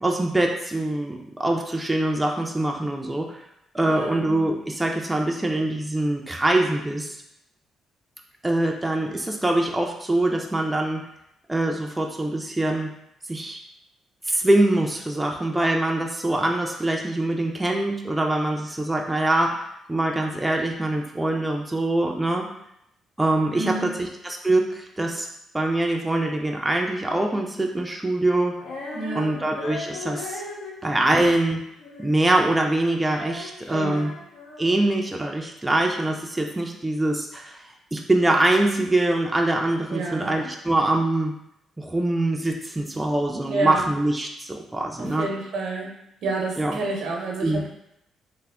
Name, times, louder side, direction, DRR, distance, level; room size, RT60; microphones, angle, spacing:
voice 1, 0.0-3.4 3.7-7.2 8.4-11.0 11.5-12.9 13.3-13.6 14.3-19.6 19.9-22.5 23.2-25.3 25.5-28.5 29.1-30.4 30.8-31.6 32.0-34.1 34.6-41.3 41.8-45.3 46.6-46.8 47.4-47.6, right 1 dB, 10° right, 1 dB, 0.4 m, -24 dB
voice 2, 3.8-4.2 23.5-23.9 28.9-29.4 33.7-34.0 39.9-40.4 43.4-43.8 45.0-45.9 46.2-47.7, right 3 dB, 75° right, 0 dB, 0.7 m, -29 dB
Female singing, 28.6-35.0, left 2 dB, 85° left, 0.7 m, -38 dB
3.4 x 2.0 x 3.5 m, 0.79 s
cardioid pair, 90°, 0 cm